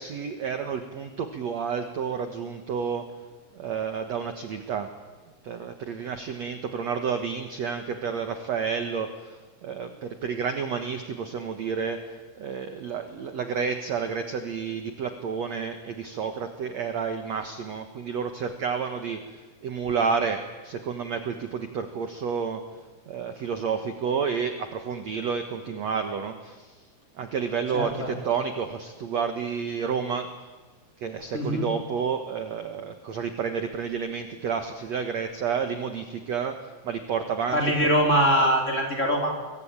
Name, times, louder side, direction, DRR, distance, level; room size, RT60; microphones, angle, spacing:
voice 1, 0.0-3.1 3.5-4.9 5.4-22.6 23.1-26.8 27.2-30.3 31.0-37.6, right 6 dB, 65° right, 6 dB, 1.7 m, -30 dB
voice 2, 27.7-28.1 31.3-31.7 37.5-39.3, equal, 15° left, 1 dB, 4.2 m, -23 dB
27.5 x 24.0 x 8.9 m, 1.3 s
omnidirectional pair, 5.2 m